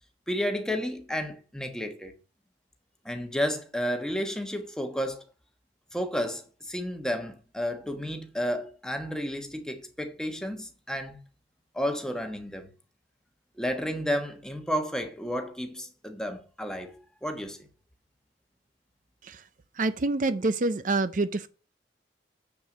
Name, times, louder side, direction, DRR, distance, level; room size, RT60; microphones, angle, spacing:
voice 1, 0.3-2.1 3.0-5.2 5.9-11.2 11.7-12.7 13.6-17.6, equal, 5° left, 1.2 m, -32 dB
voice 2, 19.8-21.5, right 2 dB, 45° right, 0.5 m, -27 dB
7.5 x 7.0 x 6.0 m
head